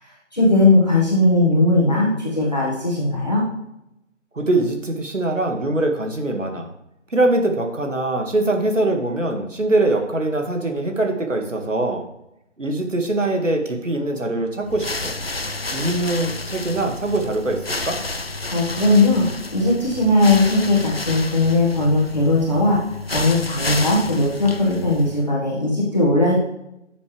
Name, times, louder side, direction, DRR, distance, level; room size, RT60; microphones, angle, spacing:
voice 1, 0.0-3.4 18.5-22.8 23.1-26.4, left 2 dB, 35° left, -5 dB, 1.7 m, -18 dB
voice 2, 4.3-6.7 7.1-12.0 12.6-15.1 15.7-18.0, right 2 dB, 75° right, 3 dB, 2.0 m, -22 dB
sound 1, 14.6-25.3, left 2 dB, 50° left, 0.5 m, -30 dB
9.7 x 7.1 x 3.3 m, 0.84 s
figure-of-eight pair, 180°, 38 cm